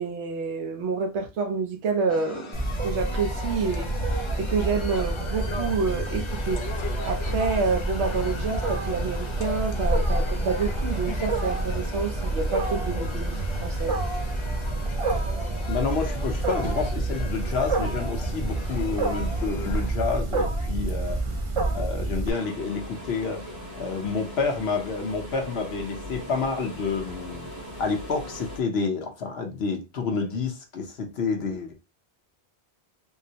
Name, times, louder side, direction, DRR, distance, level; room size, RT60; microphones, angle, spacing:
voice 1, 0.0-2.6 2.8-3.9 4.4-14.0, right 4 dB, 80° right, 1.0 m, -28 dB
sound 1, 2.1-19.9, left 3 dB, 50° left, 0.3 m, -38 dB
Wild animals, 2.5-22.3, right 2 dB, 40° right, 0.5 m, -28 dB
voice 2, 15.7-21.2 21.7-23.5 23.8-27.5 27.8-31.8, left 4 dB, 70° left, 1.0 m, -29 dB
sound 2, 22.3-28.6, equal, 55° right, 1.5 m, -39 dB
3.7 x 2.0 x 2.7 m
omnidirectional pair, 1.1 m